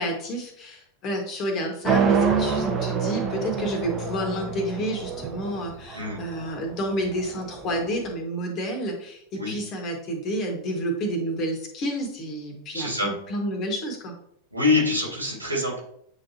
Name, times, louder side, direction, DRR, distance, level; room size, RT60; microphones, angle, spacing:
voice 1, 0.0-14.1, equal, 35° left, 2 dB, 1.7 m, -30 dB
sound 1, 1.8-7.9, right 5 dB, 25° right, 1.0 m, -27 dB
voice 2, 12.7-13.1 14.5-15.8, left 3 dB, 85° right, -3 dB, 2.1 m, -25 dB
8.7 x 4.0 x 2.9 m, 0.70 s
figure-of-eight pair, 90°, 0 cm